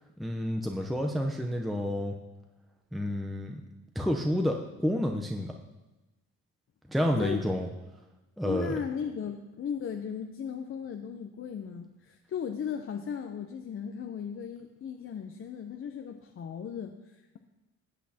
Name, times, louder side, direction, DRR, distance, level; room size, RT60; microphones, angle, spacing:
voice 1, 0.2-2.1 2.9-3.6 3.9-5.5 6.9-7.7 8.4-8.7, equal, ahead, 2 dB, 0.7 m, -29 dB
voice 2, 8.4-17.4, left 7 dB, 45° left, 5 dB, 0.7 m, -36 dB
14.5 x 8.3 x 2.8 m, 1.1 s
cardioid pair, 90°, 30 cm